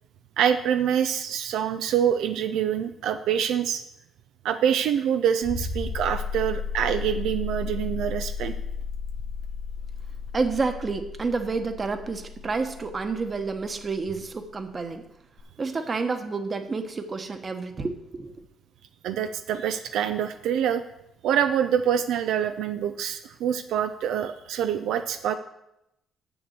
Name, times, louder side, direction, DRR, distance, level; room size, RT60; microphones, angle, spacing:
voice 1, 0.4-3.8 4.4-8.5 19.0-20.8 21.2-25.3, right 9 dB, 85° right, 8 dB, 0.5 m, -25 dB
sound 1, 5.4-13.9 15.4-15.5, left 5 dB, 50° left, 1.3 m, -33 dB
voice 2, 10.3-15.0 15.6-18.4, right 4 dB, 35° right, 7 dB, 1.1 m, -29 dB
7.0 x 6.8 x 7.9 m, 0.85 s
cardioid pair, 90°, 0 cm